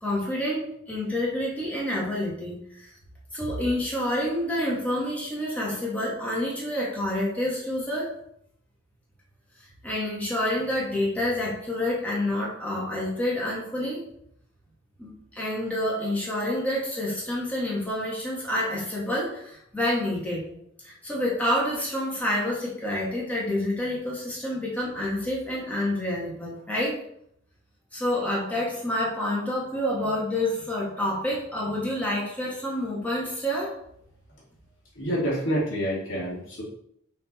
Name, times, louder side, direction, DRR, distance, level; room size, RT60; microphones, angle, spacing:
voice 1, 0.0-2.9 3.3-8.1 9.8-14.0 15.0-20.5 20.8-26.9 27.9-33.7, left 1 dB, 10° left, -5 dB, 1.7 m, -28 dB
voice 2, 35.0-36.6, equal, 70° left, -5 dB, 2.4 m, -27 dB
6.0 x 4.0 x 4.2 m, 0.71 s
head